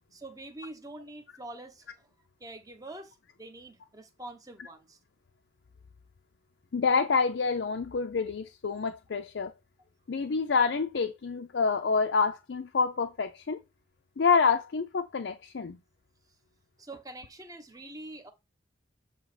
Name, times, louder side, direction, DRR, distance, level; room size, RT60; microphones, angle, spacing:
voice 1, 0.1-2.1 2.4-5.0 16.8-18.3, right 2 dB, 20° right, 0.9 m, -45 dB
voice 2, 6.7-9.5 10.1-13.6 14.2-15.8, left 5 dB, 75° left, 0.5 m, -27 dB
7.6 x 2.9 x 4.8 m
head